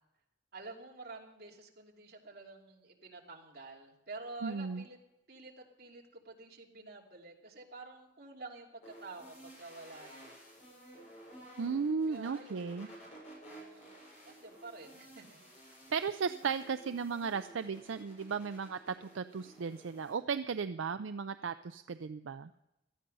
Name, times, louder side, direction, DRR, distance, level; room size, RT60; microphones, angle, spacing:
voice 1, 0.5-5.0 5.3-10.3 12.1-13.1 13.4-15.4, right 3 dB, 50° right, -1 dB, 2.9 m, -49 dB
voice 2, 4.4-4.8 11.6-12.9 15.9-22.5, right 5 dB, 75° right, 10 dB, 0.5 m, -35 dB
sound 1, 8.8-20.1, right 1 dB, 35° left, 7.5 m, -54 dB
18.0 x 13.0 x 5.4 m, 0.90 s
head